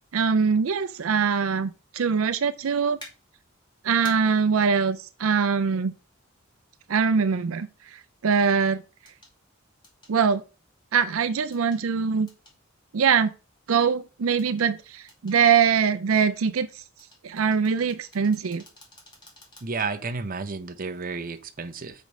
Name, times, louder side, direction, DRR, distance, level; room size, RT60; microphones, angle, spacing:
voice 1, 0.1-3.0 3.8-5.9 6.9-8.8 10.1-10.4 10.9-12.3 12.9-13.3 13.7-16.8 17.2-18.6, right 6 dB, 85° right, 0.5 m, -23 dB
sound 1, 3.0-3.1 4.0-4.2 6.2-6.3 9.1-9.3 9.8-10.1 11.5-11.8 12.3-12.6 14.4-14.7 15.1-15.4 17.0-19.9 20.3-20.4, left 1 dB, 20° left, 2.5 m, -48 dB
voice 2, 19.6-21.9, right 4 dB, 45° right, 0.7 m, -32 dB
6.2 x 5.2 x 5.4 m
head